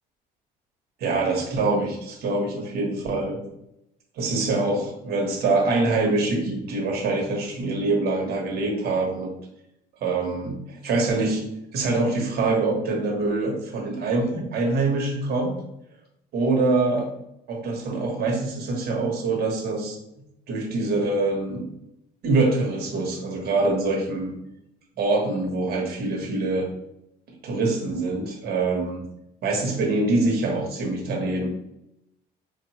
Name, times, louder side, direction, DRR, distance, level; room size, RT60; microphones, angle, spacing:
voice 1, 1.0-3.4 4.2-9.3 10.0-11.4 11.7-15.5 16.3-17.1 17.5-20.0 20.5-21.6 22.2-24.3 25.0-26.7 27.4-29.0 29.4-31.5, right 3 dB, 70° right, 0 dB, 1.1 m, -24 dB
4.6 x 2.5 x 2.9 m, 0.83 s
cardioid pair, 110°, 17 cm